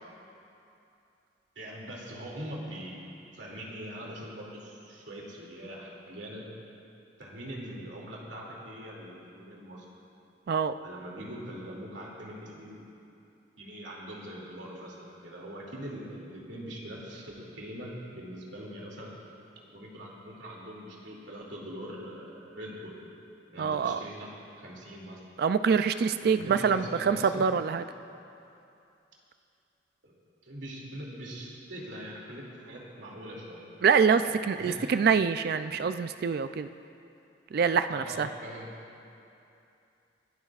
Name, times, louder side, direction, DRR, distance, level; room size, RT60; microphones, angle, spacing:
voice 1, 1.6-3.0 3.3-6.5 7.2-9.8 10.8-12.9 13.6-19.2 19.7-22.9 23.5-24.3 24.6-25.2 26.2-27.4 30.0-30.1 30.4-33.6 34.2-34.9 37.9-38.7, equal, 75° right, -3 dB, 2.5 m, -42 dB
voice 2, 23.6-24.0 25.4-27.8 33.8-36.7 37.5-38.3, right 6 dB, 55° right, 11 dB, 0.3 m, -25 dB
27.5 x 12.0 x 2.4 m, 2.7 s
head